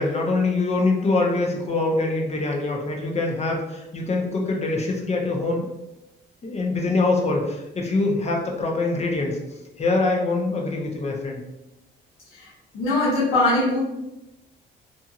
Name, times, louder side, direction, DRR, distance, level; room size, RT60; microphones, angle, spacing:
voice 1, 0.0-5.7 6.4-9.4 9.8-11.4, left 3 dB, 35° left, 1 dB, 0.6 m, -24 dB
voice 2, 12.7-13.8, left 2 dB, 85° left, -7 dB, 1.0 m, -21 dB
2.9 x 2.5 x 2.4 m, 0.95 s
cardioid pair, 90°, 20 cm